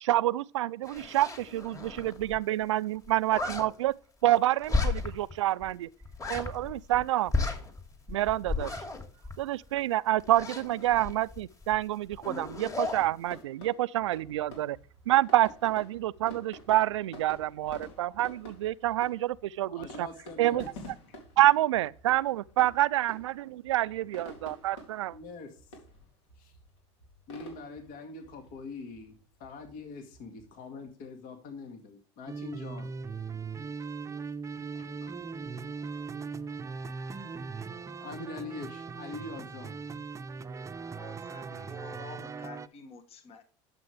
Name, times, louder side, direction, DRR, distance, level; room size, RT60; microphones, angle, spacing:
voice 1, 0.0-3.9 4.2-5.9 6.3-7.3 8.1-8.7 9.4-14.8 15.1-20.1 20.4-20.6 21.4-25.2, right 14 dB, 90° right, 0.4 m, -27 dB
sound 1, 0.8-2.4 2.6-2.7 3.0-3.6 4.6-5.3 5.6-5.7 6.0-7.0 7.3-9.8 10.2-11.8 12.1-13.1, left 3 dB, 25° left, 2.8 m, -34 dB
sound 2, 13.3-30.9, left 1 dB, 80° left, 3.8 m, -50 dB
voice 2, 19.7-20.6 21.1-21.2 25.1-25.6 26.4-26.5 27.3-32.9 35.0-35.1 37.2-37.4 38.0-39.8, left 3 dB, 60° left, 2.1 m, -43 dB
sound 3, 32.3-42.7, right 5 dB, 20° right, 0.6 m, -39 dB
voice 3, 40.9-43.4, left 4 dB, 45° left, 1.3 m, -49 dB
11.5 x 7.7 x 3.4 m
hypercardioid pair, 85°, 15 cm